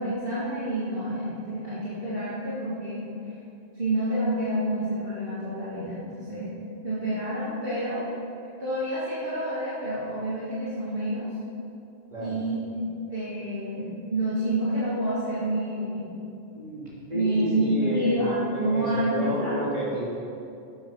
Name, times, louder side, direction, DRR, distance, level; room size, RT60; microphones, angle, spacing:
voice 1, 0.0-3.1 3.7-6.5 6.8-8.0 8.6-11.3 12.2-16.1 17.1-19.6, right 1 dB, 55° right, -11 dB, 2.8 m, -28 dB
voice 2, 12.1-12.4 16.5-20.0, right 1 dB, 40° right, -8 dB, 3.7 m, -30 dB
12.5 x 9.3 x 5.8 m, 2.6 s
omnidirectional pair, 1.1 m